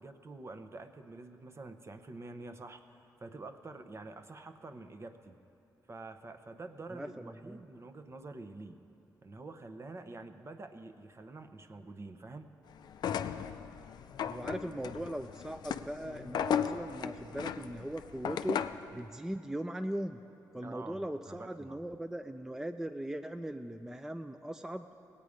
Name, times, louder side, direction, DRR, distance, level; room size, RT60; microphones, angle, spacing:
voice 1, 0.0-5.4 5.9-8.8 9.2-12.5 20.6-21.8, right 3 dB, 40° right, 8 dB, 0.8 m, -47 dB
voice 2, 6.9-7.6 14.3-18.6 18.9-20.2 20.5-24.9, right 1 dB, 5° right, 7 dB, 0.4 m, -39 dB
sound 1, 12.9-18.9, left 8 dB, 75° left, 0.4 m, -36 dB
18.5 x 8.4 x 5.0 m, 2.7 s
cardioid pair, 65°, 7 cm